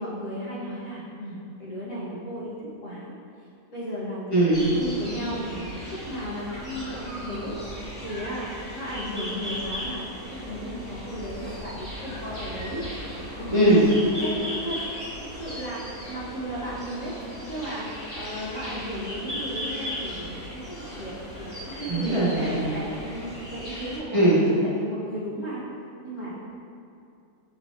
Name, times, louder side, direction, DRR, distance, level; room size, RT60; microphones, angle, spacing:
voice 1, 0.0-2.6 2.8-3.1 3.7-4.4 4.8-7.5 8.0-12.8 13.4-15.1 15.4-17.1 17.5-22.2 22.7-25.6 26.0-26.4, equal, 60° left, -9 dB, 1.5 m, -35 dB
voice 2, 4.3-4.7 13.5-13.8 21.9-22.7 24.1-24.4, right 1 dB, 45° right, -9 dB, 0.4 m, -20 dB
sound 1, 4.5-24.0, equal, 40° left, 1.6 m, -37 dB
5.9 x 3.0 x 2.7 m, 2.6 s
omnidirectional pair, 1.5 m